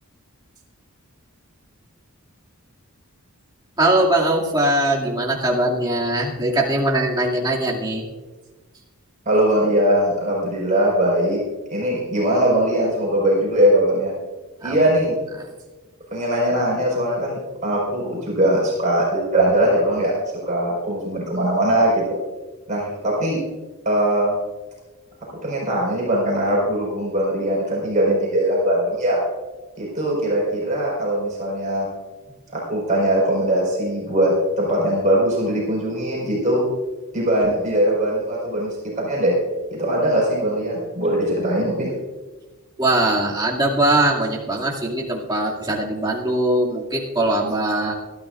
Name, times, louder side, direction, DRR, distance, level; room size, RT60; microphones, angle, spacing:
voice 1, 3.8-8.0 14.6-14.8 15.4-15.5 42.8-47.9, right 1 dB, 20° right, -4 dB, 2.4 m, -21 dB
voice 2, 9.2-11.4 11.7-14.1 14.6-15.1 16.1-20.1 20.4-22.0 22.7-23.4 23.8-24.4 25.3-29.2 29.8-31.9 32.5-36.6 37.1-39.4 39.7-41.9, right 1 dB, 35° right, -4 dB, 4.8 m, -20 dB
22.5 x 13.5 x 2.5 m, 1.2 s
head